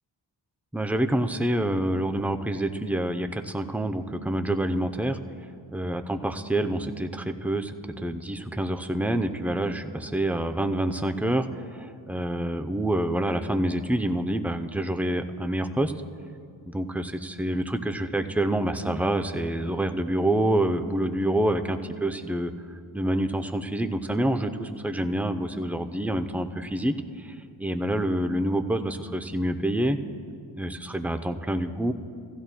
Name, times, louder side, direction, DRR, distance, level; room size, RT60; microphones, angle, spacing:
voice 1, 0.7-5.2 5.7-15.9 16.6-22.5 22.9-30.0 30.5-31.9, right 1 dB, 5° right, 7 dB, 0.6 m, -27 dB
16.0 x 13.0 x 2.2 m, 2.4 s
supercardioid pair, 40°, 47 cm